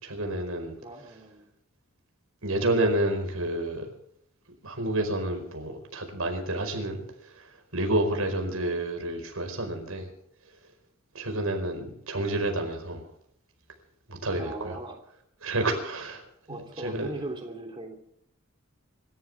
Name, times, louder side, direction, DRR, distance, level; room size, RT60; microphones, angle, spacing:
voice 1, 0.0-0.8 2.4-3.9 4.6-7.0 7.7-10.1 11.1-13.0 14.1-14.8 15.4-16.2 16.8-17.1, right 1 dB, 85° right, 4 dB, 5.0 m, -29 dB
voice 2, 0.8-1.4 14.4-15.0 16.5-17.9, right 1 dB, 25° right, 1 dB, 3.2 m, -38 dB
26.0 x 14.0 x 3.6 m, 0.73 s
head